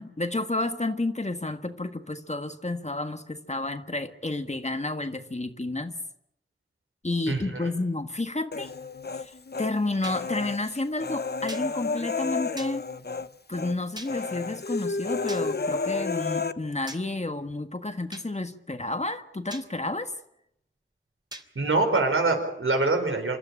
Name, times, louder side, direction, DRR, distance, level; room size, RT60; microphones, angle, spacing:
voice 1, 0.0-6.0 7.0-8.7 9.1-12.8 13.5-20.1, left 2 dB, 35° left, 7 dB, 1.6 m, -31 dB
voice 2, 7.3-7.7 21.5-23.4, right 3 dB, 90° right, 5 dB, 4.6 m, -24 dB
Human voice, 8.5-9.7 10.0-13.3 13.5-13.7 14.1-16.5, left 4 dB, 55° left, 0.9 m, -31 dB
sound 1, 10.0-10.2 11.5-11.7 12.6-12.7 14.0-14.1 15.3-15.4 16.9-17.0 18.1-18.3 19.5-19.7 21.3-21.5, right 1 dB, 20° right, 3.2 m, -40 dB
26.5 x 13.0 x 10.0 m, 0.79 s
wide cardioid pair, 45°, 20 cm